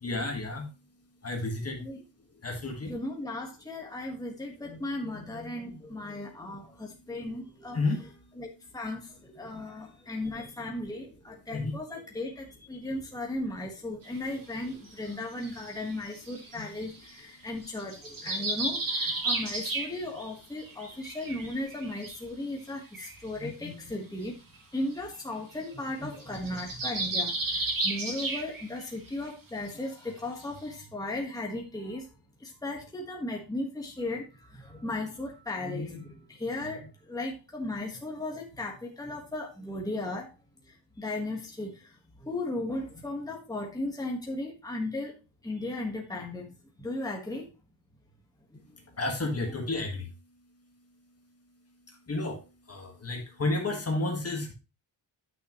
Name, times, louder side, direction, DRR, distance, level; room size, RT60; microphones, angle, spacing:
voice 1, 0.0-0.7 1.2-1.8 2.4-2.9 7.7-8.0 11.5-11.7 49.0-50.1 52.1-52.4 52.7-54.5, left 2 dB, 30° left, 3 dB, 1.7 m, -31 dB
voice 2, 2.6-8.1 8.4-24.3 24.7-32.1 32.4-40.3 41.0-45.2 45.4-47.5 48.5-48.6 49.5-49.6, left 2 dB, 10° left, -1 dB, 1.5 m, -36 dB
sound 1, 14.0-14.2 14.9-17.2 17.7-20.3 20.6-22.2 22.7-22.8 22.9-23.2 24.2-24.3 24.6-24.7 25.0-25.2 25.5-25.7 25.9-28.8 29.1-29.3 29.7-29.8 30.4-30.5, right 2 dB, 45° right, 2.3 m, -33 dB
9.9 x 6.0 x 3.1 m, 0.28 s
wide cardioid pair, 150°, 46 cm